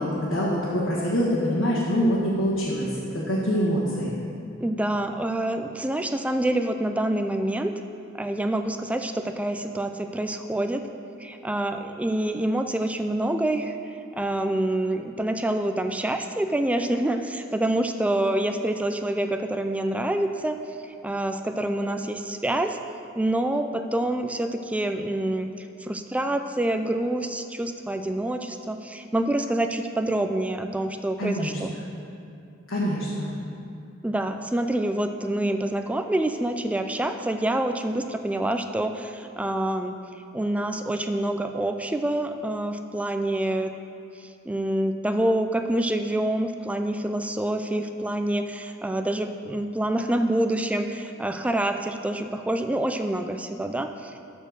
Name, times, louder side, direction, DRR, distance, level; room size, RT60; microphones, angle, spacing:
voice 1, 0.0-4.1 31.2-31.6 32.7-33.3, equal, 75° left, -7 dB, 1.6 m, -25 dB
voice 2, 4.6-7.8 8.1-10.9 11.2-13.8 14.1-20.6 21.0-22.8 23.2-31.8 34.0-39.9 40.3-43.8 44.2-54.2, right 1 dB, 5° right, 7 dB, 0.3 m, -27 dB
12.5 x 4.4 x 6.5 m, 2.5 s
head